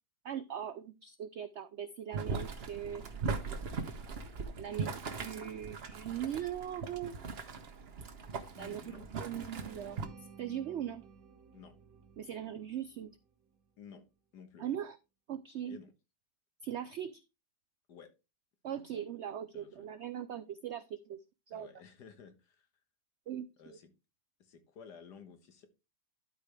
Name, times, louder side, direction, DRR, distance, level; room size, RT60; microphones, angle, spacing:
voice 1, 0.2-3.0 4.6-7.2 8.5-10.0 10.4-11.0 12.2-13.1 14.6-15.0 15.3-15.8 16.6-17.2 18.6-21.2 21.5-21.7 23.3-23.8, right 10 dB, 90° right, 12 dB, 0.6 m, -40 dB
Boiling, 2.1-10.1, right 4 dB, 45° right, 0.9 m, -40 dB
voice 2, 8.5-9.1 11.5-11.7 13.8-14.0 14.3-14.7 15.7-15.9 17.9-18.1 19.5-19.9 21.5-22.7 23.6-23.9 24.4-25.7, left 6 dB, 85° left, 8 dB, 1.8 m, -53 dB
sound 1, 9.5-13.6, right 6 dB, 65° right, 1.3 m, -55 dB
11.5 x 4.9 x 3.3 m, 0.26 s
omnidirectional pair, 1.7 m